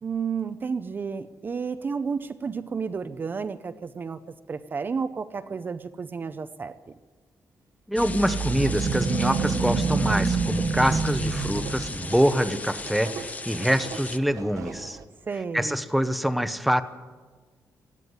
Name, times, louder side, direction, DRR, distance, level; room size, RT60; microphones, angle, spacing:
voice 1, 0.0-4.2 4.5-6.8 15.3-15.8, right 5 dB, 35° right, 10 dB, 0.6 m, -31 dB
voice 2, 7.9-15.0 15.5-16.8, equal, ahead, 11 dB, 0.8 m, -25 dB
sound 1, 8.0-14.2, left 3 dB, 25° left, 0.8 m, -37 dB
sound 2, 8.0-12.4, right 4 dB, 50° right, 1.8 m, -27 dB
sound 3, 8.2-15.0, right 6 dB, 75° right, 1.3 m, -42 dB
19.0 x 14.5 x 9.6 m, 1.4 s
wide cardioid pair, 155°, 6 cm